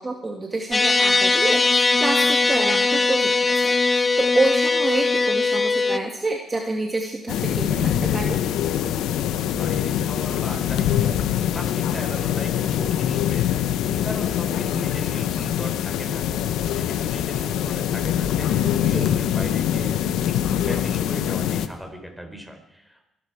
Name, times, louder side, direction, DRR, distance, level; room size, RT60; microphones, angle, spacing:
voice 1, 0.0-8.4 18.9-19.1, right 2 dB, 25° right, 2 dB, 2.0 m, -27 dB
sound 1, 0.7-6.0, left 3 dB, 25° left, 0.7 m, -20 dB
sound 2, 7.3-21.7, left 10 dB, 85° left, 0.8 m, -24 dB
voice 2, 9.5-11.2 11.5-16.2 16.6-23.1, equal, ahead, 3 dB, 4.0 m, -37 dB
24.0 x 12.5 x 4.9 m, 0.88 s
cardioid pair, 90°, 0 cm